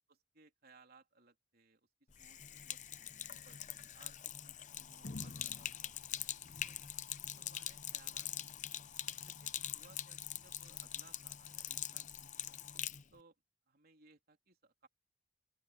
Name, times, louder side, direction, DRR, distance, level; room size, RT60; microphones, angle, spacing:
voice 1, 0.1-1.9 2.2-2.4 2.7-2.8 3.3-7.0 7.4-8.8 9.2-12.6 13.1-13.4 13.7-14.9, right 4 dB, 55° right, 3.6 m, -65 dB
Sink (filling or washing), 2.1-13.0, left 10 dB, 40° left, 0.8 m, -44 dB
open air
head